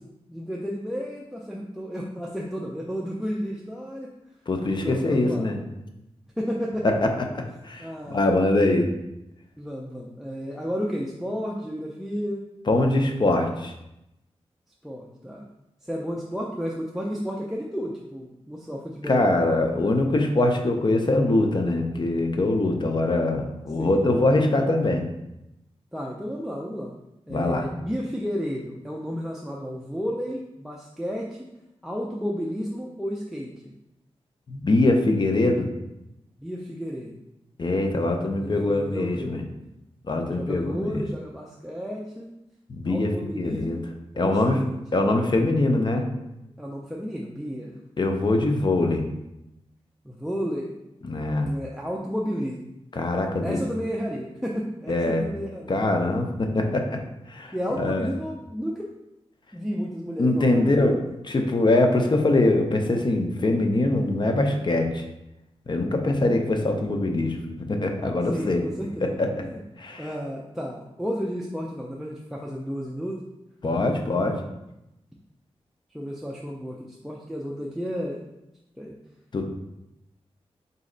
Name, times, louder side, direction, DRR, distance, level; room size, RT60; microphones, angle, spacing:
voice 1, 0.3-4.1 4.8-5.5 6.4-6.9 7.8-8.3 9.6-12.4 14.8-15.4 15.8-19.2 23.8-24.1 25.9-26.9 27.3-31.4 31.8-33.7 36.4-37.1 38.3-39.4 40.2-42.3 42.9-43.9 44.1-44.8 46.6-47.7 50.0-50.7 51.4-52.7 53.4-55.7 57.5-58.9 59.5-61.0 68.3-69.1 69.4-69.6 70.0-73.2 75.9-78.3 78.8-78.9, equal, 5° right, -2 dB, 0.5 m, -32 dB
voice 2, 4.5-5.6 6.8-6.9 7.6-8.9 12.7-13.7 19.1-25.0 27.3-27.7 34.5-35.7 37.6-39.4 40.1-41.0 42.7-43.8 44.2-44.6 44.9-46.1 48.0-49.1 51.0-51.5 52.9-53.6 54.9-55.2 55.7-57.0 57.3-58.1 60.2-61.0 61.2-65.0 65.7-67.4 67.7-68.6 69.0-69.3 69.8-70.1 73.6-74.4 79.3-79.4, left 2 dB, 45° left, 3 dB, 0.6 m, -23 dB
4.0 x 3.1 x 3.8 m, 0.89 s
wide cardioid pair, 85°, 11 cm